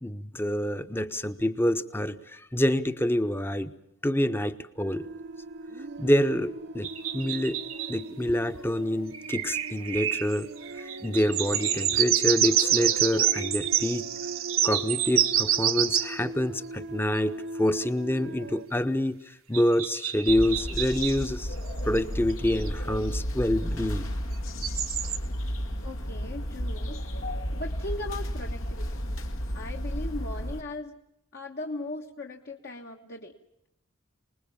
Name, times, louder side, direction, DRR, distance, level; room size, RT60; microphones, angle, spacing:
voice 1, 0.0-3.7 4.0-5.1 6.0-10.5 10.8-14.1 14.6-21.5 21.8-24.1, left 1 dB, 10° left, 11 dB, 1.0 m, -27 dB
sound 1, 4.8-18.7, right 2 dB, 55° right, 0.8 m, -40 dB
sound 2, 6.8-8.0 9.1-16.2 19.5-21.2 22.0-22.1 22.3-22.7 24.6-25.2, right 11 dB, 75° right, 1.4 m, -27 dB
sound 3, 20.3-30.6, equal, 75° left, 2.1 m, -33 dB
voice 2, 25.8-27.0 27.5-28.9 29.5-30.9 31.3-33.3, left 2 dB, 50° left, 1 dB, 1.4 m, -38 dB
25.5 x 20.5 x 7.2 m, 0.83 s
head